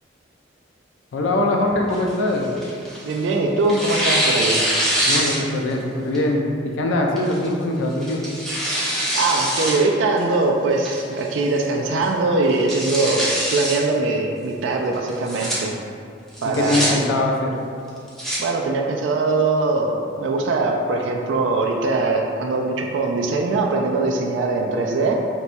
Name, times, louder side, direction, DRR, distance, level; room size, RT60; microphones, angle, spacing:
voice 1, 1.1-2.5 5.1-8.2 16.4-17.5, left 1 dB, 85° left, 1 dB, 0.4 m, -22 dB
Tearing, 1.9-3.2 3.7-5.7 6.1-6.2 7.2-7.5 8.0-9.8 10.2-10.3 10.8-11.3 11.6-11.7 12.0-12.1 12.5-13.8 15.1-15.5 16.3-16.9 17.9-18.4, equal, ahead, 0.6 m, -23 dB
voice 2, 3.0-4.7 9.1-15.7 16.4-17.0 18.4-25.2, right 3 dB, 70° right, 1 dB, 0.3 m, -21 dB
4.2 x 2.2 x 2.6 m, 2.4 s
head